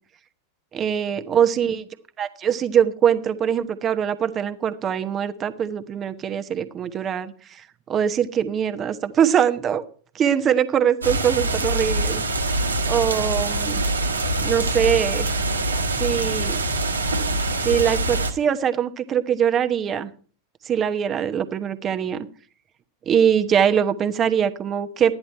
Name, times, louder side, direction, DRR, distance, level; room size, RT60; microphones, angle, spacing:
voice 1, 0.7-1.9 2.2-7.6 7.9-9.8 10.1-12.2 12.9-13.8 14.4-15.3 16.0-16.6 17.6-20.1 20.7-22.2 23.1-25.1, right 8 dB, 25° right, 10 dB, 1.0 m, -22 dB
sound 1, 11.0-18.3, right 2 dB, 75° right, 1.5 m, -24 dB
13.0 x 10.5 x 4.4 m, 0.42 s
figure-of-eight pair, 90°, 0 cm